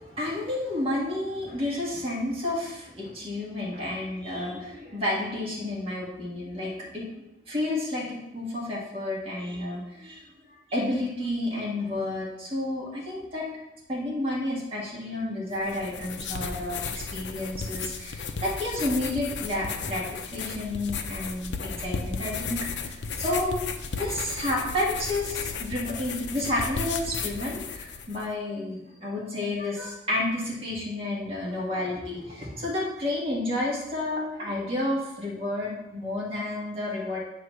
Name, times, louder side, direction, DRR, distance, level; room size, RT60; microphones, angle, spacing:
voice 1, 0.0-10.2 10.7-13.5 13.9-23.7 24.0-37.2, left 1 dB, 30° right, -5 dB, 1.9 m, -31 dB
sound 1, 15.5-28.3, left 5 dB, 75° left, 0.6 m, -34 dB
8.0 x 3.0 x 6.0 m, 0.91 s
head